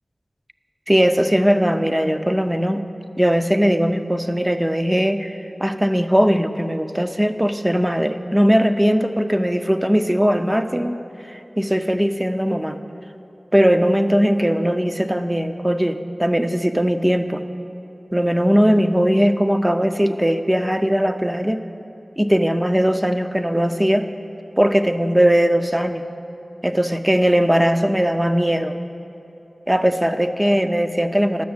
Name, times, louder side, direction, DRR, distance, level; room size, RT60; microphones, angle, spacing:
voice 1, 0.9-2.9 3.2-11.0 11.3-12.8 13.5-17.4 18.1-21.6 22.2-24.1 24.6-26.0 26.6-28.7 29.7-31.4, equal, 15° right, 8 dB, 0.6 m, -19 dB
12.5 x 6.3 x 8.0 m, 2.9 s
wide cardioid pair, 45°, 0 cm